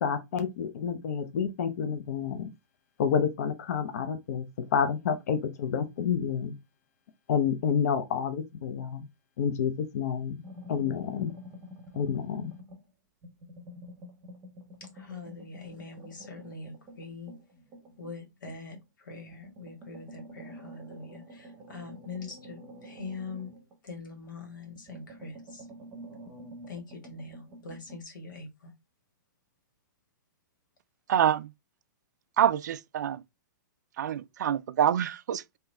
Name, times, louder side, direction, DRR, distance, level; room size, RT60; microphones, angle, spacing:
voice 1, 0.0-2.5 3.0-4.5 4.7-6.5 7.3-9.0 9.4-10.4 10.7-11.3 11.9-12.5, left 7 dB, 55° left, 0.7 m, -29 dB
sound 1, 10.4-12.9 13.2-18.8 19.3-24.3 24.7-28.0, equal, 15° right, 0.8 m, -48 dB
voice 2, 14.9-17.3 18.0-23.5 23.8-25.6 26.7-28.7, left 4 dB, 90° left, 2.0 m, -43 dB
voice 3, 31.1-31.5 32.4-33.2 34.0-35.6, right 10 dB, 65° right, 0.4 m, -26 dB
3.7 x 2.8 x 3.4 m
hypercardioid pair, 165°, 10 cm